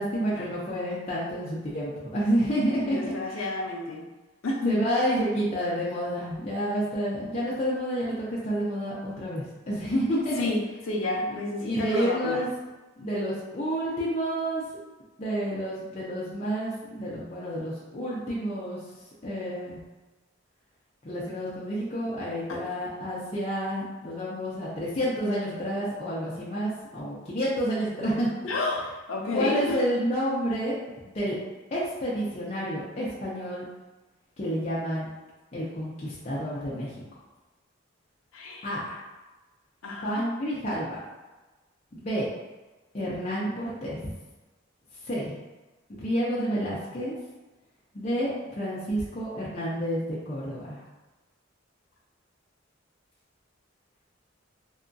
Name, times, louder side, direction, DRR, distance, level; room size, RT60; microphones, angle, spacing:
voice 1, 0.0-3.5 4.6-10.5 11.6-12.5 13.0-14.6 15.2-18.8 19.2-19.8 21.0-28.3 29.3-30.8 31.0-31.4 31.7-33.6 34.4-35.1 35.5-36.9 38.6-39.0 40.0-41.0 41.9-42.3 42.9-44.1 45.1-45.4 45.9-47.2 47.9-50.8, equal, 35° left, -7 dB, 0.5 m, -29 dB
voice 2, 2.8-4.1 4.4-4.8 10.4-10.6 10.9-12.4 22.5-22.6 28.5-28.8 29.1-29.8 38.3-38.7 39.8-40.2, left 2 dB, 85° left, -1 dB, 0.6 m, -30 dB
2.7 x 2.3 x 2.6 m, 1.2 s
head